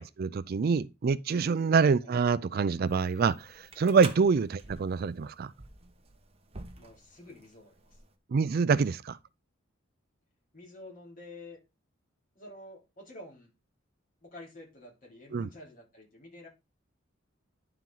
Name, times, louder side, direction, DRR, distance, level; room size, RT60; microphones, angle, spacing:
voice 1, 0.2-5.5 8.3-9.2 15.3-15.5, right 5 dB, 50° right, 0.4 m, -26 dB
sound 1, 2.9-8.1, right 4 dB, 30° right, 0.9 m, -48 dB
voice 2, 6.8-8.0 10.5-11.6 12.3-13.5 14.2-16.5, left 1 dB, 45° left, 3.5 m, -49 dB
10.5 x 4.5 x 3.8 m
head